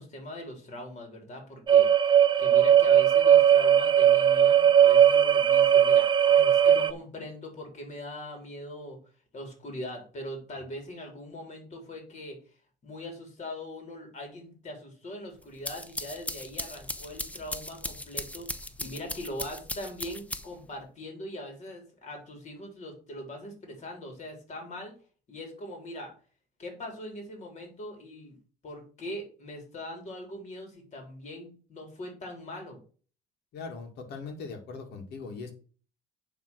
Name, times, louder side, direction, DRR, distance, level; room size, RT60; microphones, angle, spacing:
voice 1, 0.0-1.9 2.4-9.0 9.3-12.4 12.8-18.5 18.8-24.9 25.3-26.1 26.6-28.4 28.6-32.8, left 1 dB, 45° left, 3 dB, 3.5 m, -41 dB
sound 1, 1.7-6.9, right 9 dB, 25° right, 0.5 m, -19 dB
sound 2, 15.4-20.7, left 1 dB, 10° left, 0.7 m, -38 dB
voice 2, 33.5-35.5, left 4 dB, 75° left, 4 dB, 2.1 m, -40 dB
9.4 x 3.7 x 6.2 m, 0.41 s
cardioid pair, 110°, 17 cm